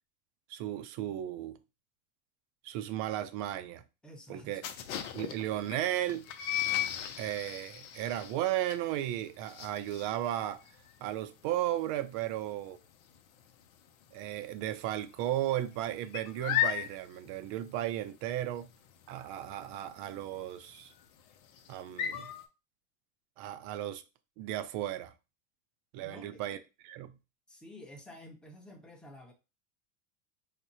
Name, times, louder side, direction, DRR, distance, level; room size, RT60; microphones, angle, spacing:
voice 1, 0.5-1.6 2.6-3.8 4.3-4.6 5.1-6.3 7.2-10.6 11.0-12.8 14.1-18.7 19.1-20.9 21.7-22.3 23.4-24.0 24.4-25.1 25.9-27.2, right 13 dB, 50° right, 0.5 m, -35 dB
voice 2, 4.0-4.6 26.0-26.4 27.5-29.3, left 1 dB, ahead, 0.7 m, -50 dB
sound 1, 4.6-14.1 14.4-14.8 15.0-22.5, left 11 dB, 80° left, 0.7 m, -37 dB
4.9 x 2.1 x 2.8 m
supercardioid pair, 105°, 41 cm